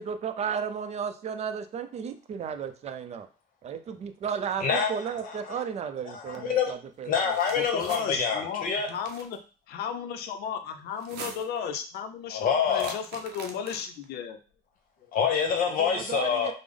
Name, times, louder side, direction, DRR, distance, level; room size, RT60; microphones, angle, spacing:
voice 1, 0.0-3.3 3.6-7.1 15.8-16.5, right 7 dB, 40° right, 8 dB, 0.4 m, -34 dB
voice 2, 4.6-5.6 6.0-6.7 7.0-8.9 12.3-13.0 15.1-16.5, left 6 dB, 55° left, 3 dB, 0.9 m, -26 dB
sound 1, 7.0-8.0 8.8-9.4 10.9-11.6 12.7-14.0, right 5 dB, 80° right, 0.6 m, -43 dB
voice 3, 7.5-9.4 9.7-14.4, left 7 dB, 70° left, 7 dB, 0.5 m, -35 dB
3.4 x 2.0 x 3.5 m, 0.36 s
cardioid pair, 110°, 17 cm